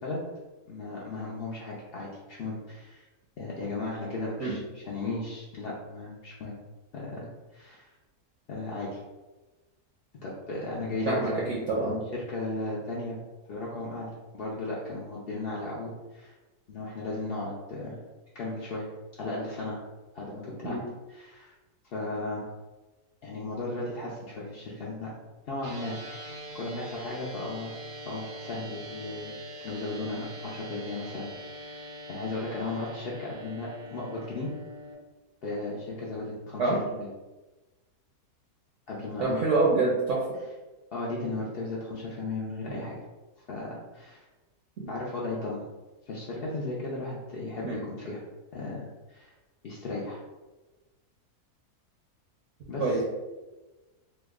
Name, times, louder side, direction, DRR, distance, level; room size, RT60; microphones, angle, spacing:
voice 1, 0.7-3.1 3.4-6.6 6.9-7.9 8.5-9.0 10.2-13.2 13.5-16.3 16.7-18.0 18.3-18.9 19.1-19.8 20.1-20.8 21.1-21.5 21.9-22.5 23.2-25.1 25.5-27.7 28.1-29.3 29.6-31.8 32.1-34.5 35.4-37.1 38.9-39.4 40.9-43.0 43.5-44.2 44.9-45.7 46.1-48.2 48.5-49.3 49.6-50.2 52.7-53.0, left 2 dB, 85° left, -5 dB, 0.5 m, -35 dB
voice 2, 11.1-11.9 20.6-20.8 36.6-36.8 39.2-40.4 42.7-42.8 44.8-44.9 47.6-47.8 52.8-53.0, right 3 dB, 65° right, -4 dB, 0.8 m, -26 dB
sound 1, 25.6-34.9, equal, 80° right, 1.2 m, -43 dB
3.1 x 2.0 x 3.5 m, 1.2 s
omnidirectional pair, 1.6 m